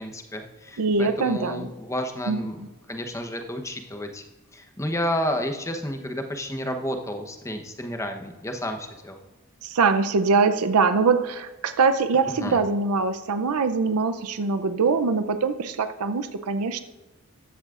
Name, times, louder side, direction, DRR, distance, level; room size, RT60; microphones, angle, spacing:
voice 1, 0.0-2.6 2.9-4.2 4.5-9.2 12.4-12.6, equal, 15° left, 4 dB, 0.9 m, -31 dB
voice 2, 0.8-1.7 2.3-2.7 9.6-16.8, right 4 dB, 85° right, 10 dB, 0.5 m, -23 dB
14.5 x 11.5 x 2.5 m, 1.1 s
head